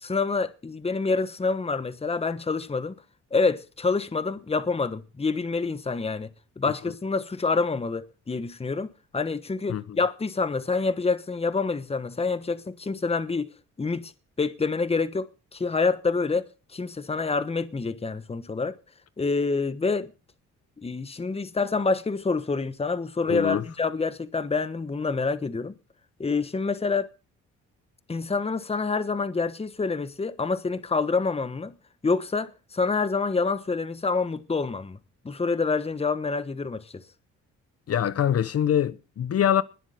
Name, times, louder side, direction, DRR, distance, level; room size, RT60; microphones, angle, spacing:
voice 1, 0.0-2.9 3.3-6.3 6.6-8.9 9.1-13.5 13.8-14.1 14.4-15.3 15.5-16.5 16.7-18.7 19.2-20.1 20.8-25.7 26.2-27.1 28.1-31.7 32.0-35.0 35.2-37.0, left 4 dB, 20° left, 1.2 m, -27 dB
voice 2, 23.3-23.7 37.9-39.6, left 10 dB, 50° left, 1.1 m, -24 dB
21.0 x 7.5 x 5.1 m
cardioid pair, 90°, 30 cm